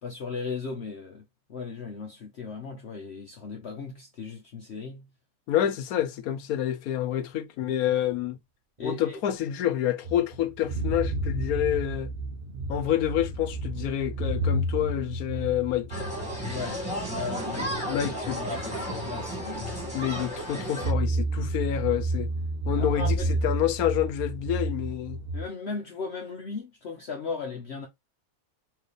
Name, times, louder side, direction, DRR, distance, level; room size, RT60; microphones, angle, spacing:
voice 1, 0.0-1.2 1.5-5.0 8.8-9.2 16.4-16.8 17.1-17.8 18.3-19.9 20.3-20.5 22.7-23.4 25.3-27.9, left 4 dB, 55° left, 0.9 m, -37 dB
voice 2, 5.5-8.4 8.8-12.1 12.7-16.0 17.6-18.4 19.9-22.3 22.7-25.2, left 11 dB, 85° left, 1.1 m, -28 dB
sound 1, 10.0-18.6 19.0-19.1 20.8-25.5, right 1 dB, 50° right, 0.9 m, -31 dB
sound 2, 15.9-20.9, equal, 5° right, 1.8 m, -33 dB
4.5 x 2.8 x 3.2 m
omnidirectional pair, 1.5 m